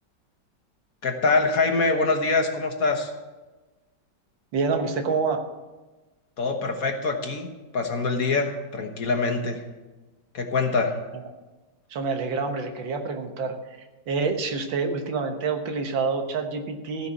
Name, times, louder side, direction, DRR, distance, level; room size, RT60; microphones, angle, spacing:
voice 1, 1.0-3.1 6.4-7.5 7.7-9.6 10.3-11.0, left 3 dB, 55° left, 4 dB, 1.6 m, -24 dB
voice 2, 4.5-5.4 11.9-13.6 14.1-17.1, right 4 dB, 90° right, 5 dB, 2.0 m, -27 dB
15.5 x 5.8 x 8.0 m, 1.2 s
omnidirectional pair, 2.0 m